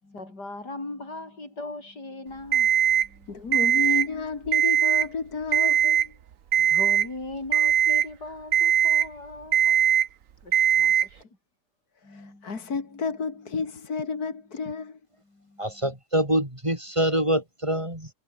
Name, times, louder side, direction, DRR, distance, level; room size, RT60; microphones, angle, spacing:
voice 1, 0.0-3.6 6.6-9.8 10.4-11.2 12.0-13.1 14.1-14.3 15.2-15.8, left 2 dB, 85° left, 7.4 m, -40 dB
Alarm, 2.5-3.1 3.5-4.1 4.5-5.1 5.5-6.1 6.5-7.1 7.5-8.1 8.5-9.1 9.5-10.1 10.5-11.1, right 9 dB, 55° right, 1.3 m, -20 dB
voice 2, 3.3-6.1 12.1-15.0, left 4 dB, 65° left, 3.1 m, -31 dB
voice 3, 15.6-18.1, right 1 dB, 15° right, 5.2 m, -25 dB
omnidirectional pair, 1.7 m